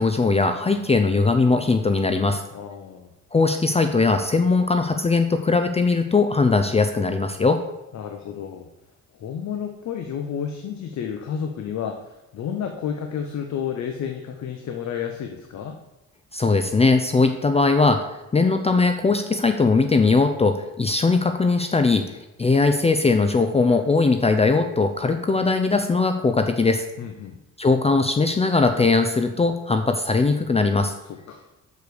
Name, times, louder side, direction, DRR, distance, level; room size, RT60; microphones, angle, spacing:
voice 1, 0.0-2.4 3.3-7.6 16.3-26.8 27.6-30.9, left 3 dB, 20° left, 7 dB, 0.6 m, -20 dB
voice 2, 2.5-3.1 7.9-8.7 9.2-15.8 27.0-27.4 31.1-31.5, left 8 dB, 65° left, 5 dB, 0.9 m, -31 dB
6.7 x 4.8 x 6.8 m, 0.93 s
cardioid pair, 90°, 30 cm